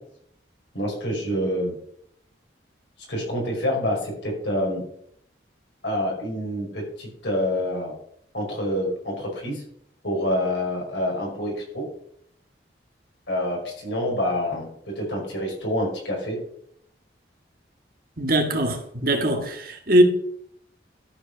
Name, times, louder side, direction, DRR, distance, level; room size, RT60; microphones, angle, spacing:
voice 1, 0.7-1.8 3.1-4.9 5.8-7.9 8.3-9.6 10.0-11.9 13.3-14.7 15.0-16.4, left 1 dB, 85° left, 5.2 m, -27 dB
voice 2, 18.2-18.8 19.0-19.6 19.9-20.0, right 1 dB, 50° right, 1.8 m, -19 dB
12.5 x 5.6 x 6.2 m
head